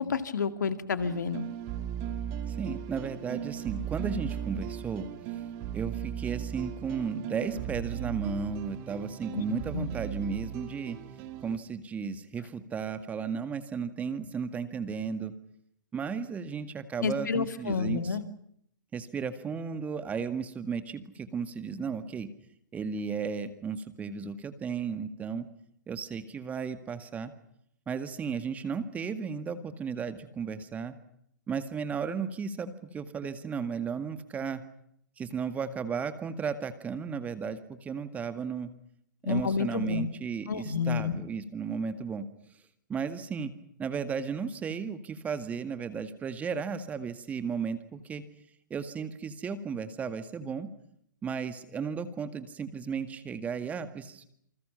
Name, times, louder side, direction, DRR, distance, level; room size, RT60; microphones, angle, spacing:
voice 1, 0.0-1.5 9.3-9.4 9.7-9.9 17.0-18.2 39.2-40.0 40.5-41.2, left 5 dB, 65° left, 10 dB, 2.3 m, -29 dB
sound 1, 1.0-11.6, right 10 dB, 30° right, 2.6 m, -37 dB
voice 2, 2.5-5.1 5.7-11.0 11.4-15.3 15.9-18.2 18.9-22.3 22.7-25.5 25.9-27.3 27.9-30.9 31.5-34.6 35.2-38.7 39.2-42.3 42.9-43.5 43.8-48.2 48.7-50.7 51.2-54.2, right 6 dB, 15° right, 10 dB, 1.9 m, -34 dB
29.0 x 26.5 x 5.8 m, 0.71 s
figure-of-eight pair, 115°, 11 cm